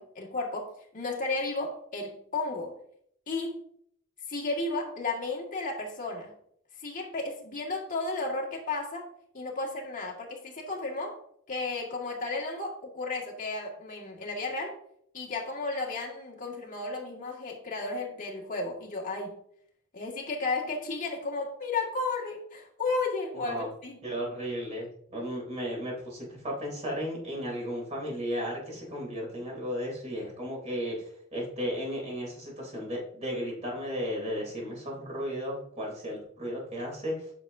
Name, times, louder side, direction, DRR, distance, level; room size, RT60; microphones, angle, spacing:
voice 1, 0.0-2.7 3.3-3.6 4.3-6.3 6.8-9.1 9.3-11.2 11.5-14.7 15.1-19.3 19.9-24.0, left 3 dB, 40° left, -2 dB, 2.0 m, -33 dB
voice 2, 23.3-23.7 24.0-24.9 25.1-37.1, equal, 35° right, -2 dB, 3.4 m, -34 dB
9.6 x 6.2 x 2.7 m, 0.66 s
head